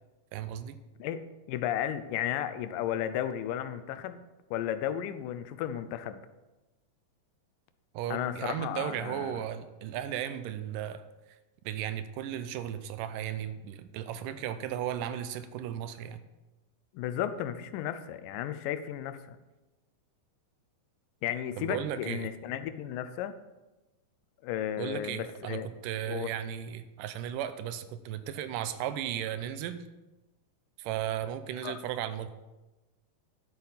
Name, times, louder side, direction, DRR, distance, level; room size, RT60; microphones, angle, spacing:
voice 1, 0.3-0.8 7.9-11.0 11.6-16.2 21.6-22.3 24.8-29.9 30.8-32.3, right 10 dB, 85° right, 12 dB, 2.2 m, -35 dB
voice 2, 1.5-4.2 4.5-6.2 8.1-9.4 16.9-19.4 21.2-23.3 24.4-25.7 26.1-26.3 31.6-31.8, left 10 dB, 85° left, 11 dB, 2.3 m, -34 dB
11.5 x 8.4 x 4.0 m, 1.1 s
omnidirectional pair, 3.8 m